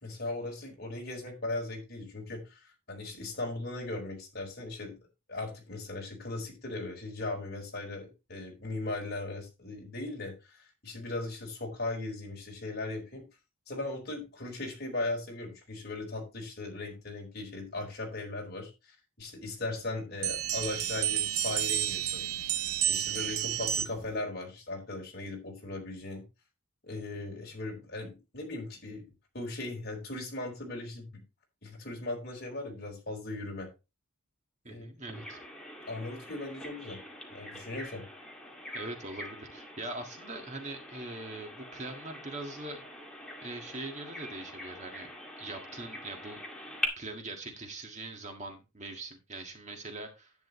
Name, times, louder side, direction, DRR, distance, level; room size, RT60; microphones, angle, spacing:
voice 1, 0.0-4.9 5.3-13.2 13.7-22.3 22.8-26.2 26.8-29.1 29.3-31.1 31.6-33.7 34.7-34.9 35.1-35.2 35.9-37.0 37.3-38.0, left 2 dB, 50° left, 1 dB, 4.6 m, -38 dB
sound 1, 20.2-24.1, right 10 dB, 85° right, 0.8 m, -31 dB
voice 2, 34.7-35.4 38.7-42.8 43.4-46.4 47.0-50.3, right 2 dB, 35° right, 3 dB, 1.7 m, -42 dB
Bird vocalization bird call bird song, 35.1-46.9, left 1 dB, 5° left, 2.1 m, -43 dB
11.0 x 9.1 x 3.1 m, 0.27 s
head